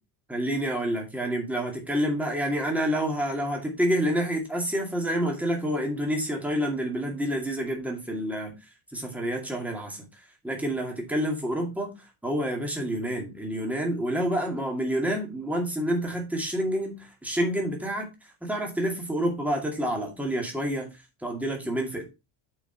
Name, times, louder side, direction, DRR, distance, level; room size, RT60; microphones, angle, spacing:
voice 1, 0.3-8.5 8.9-10.0 10.4-12.0 12.2-18.1 18.4-20.9 21.2-22.1, equal, 5° right, 2.2 m, -28 dB
8.6 x 5.0 x 4.4 m
cardioid pair, 175°, 48 cm